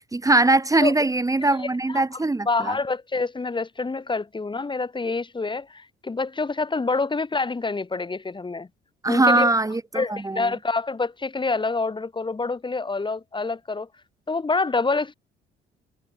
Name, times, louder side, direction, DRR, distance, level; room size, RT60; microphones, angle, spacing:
voice 1, 0.0-2.8 9.0-10.5, right 2 dB, 15° right, 1.5 m, -21 dB
voice 2, 2.5-8.7 9.1-9.5 9.9-13.9 14.3-15.1, left 3 dB, 25° left, 2.1 m, -26 dB
cardioid pair, 90°, 20 cm